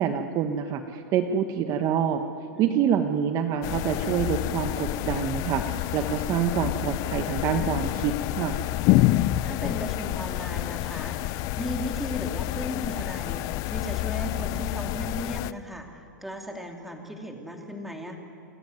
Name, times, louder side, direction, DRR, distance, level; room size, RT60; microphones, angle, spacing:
voice 1, 0.0-2.2 2.6-8.6, right 8 dB, 35° right, 7 dB, 1.1 m, -26 dB
voice 2, 2.5-3.0 9.4-11.2 11.6-18.2, equal, ahead, 2 dB, 2.8 m, -36 dB
sound 1, 3.6-15.5, left 17 dB, 35° left, 0.5 m, -28 dB
29.0 x 13.0 x 9.5 m, 2.9 s
hypercardioid pair, 135°, 10 cm